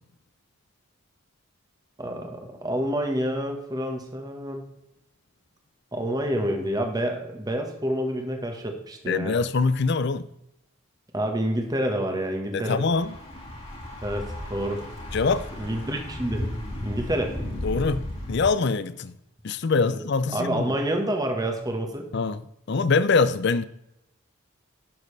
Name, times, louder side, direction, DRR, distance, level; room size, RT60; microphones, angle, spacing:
voice 1, 2.0-4.6 5.9-9.4 11.1-12.8 14.0-14.8 15.6-16.4 16.8-17.3 19.8-20.0 20.3-22.1, right 1 dB, 20° right, 1.3 m, -28 dB
voice 2, 9.1-10.3 12.5-13.1 15.1-15.5 17.6-19.1 19.4-20.7 22.1-22.4 22.7-23.6, left 4 dB, 55° left, 0.5 m, -24 dB
Thunder / Bicycle, 12.7-18.5, left 1 dB, 30° left, 2.1 m, -35 dB
11.5 x 6.6 x 3.3 m
head